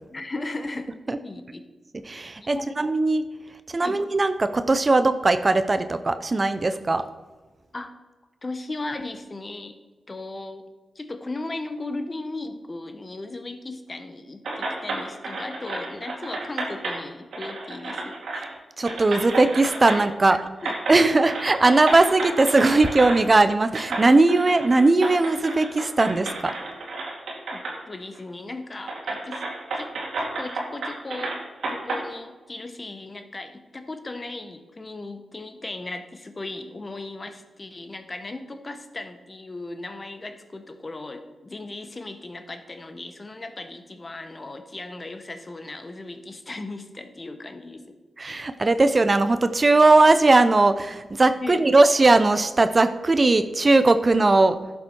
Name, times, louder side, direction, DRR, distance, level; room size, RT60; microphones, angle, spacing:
voice 1, 0.1-0.9 1.2-1.6 2.5-2.7 3.8-4.0 7.7-8.0 8.4-9.8 10.1-10.7 10.9-18.2 20.6-20.7 21.1-21.3 27.5-27.6 27.8-29.4 29.7-29.9 30.2-31.4 31.6-48.0 51.4-51.7, left 2 dB, 35° left, 8 dB, 1.1 m, -36 dB
voice 2, 1.9-3.2 3.7-7.0 18.3-18.5 18.8-26.5 48.2-54.6, right 2 dB, 40° right, 11 dB, 0.6 m, -19 dB
sound 1, 14.4-17.0 17.3-18.5 18.9-20.3 20.6-21.0 21.3-23.2 23.7-27.8 28.1-28.2 28.9-32.0, right 2 dB, 75° right, 2.2 m, -31 dB
11.5 x 7.1 x 4.5 m, 1.3 s
supercardioid pair, 45°, 0 cm